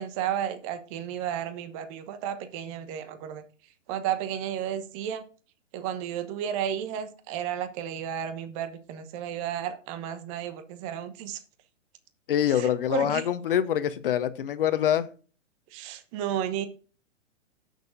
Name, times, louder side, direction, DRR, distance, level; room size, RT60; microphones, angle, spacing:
voice 1, 0.0-3.4 3.9-5.2 5.7-11.4 12.5-13.2 15.7-16.7, right 10 dB, 25° right, 1.0 m, -33 dB
voice 2, 12.3-15.1, left 10 dB, 45° left, 0.9 m, -25 dB
17.0 x 6.6 x 2.6 m
figure-of-eight pair, 115°, 37 cm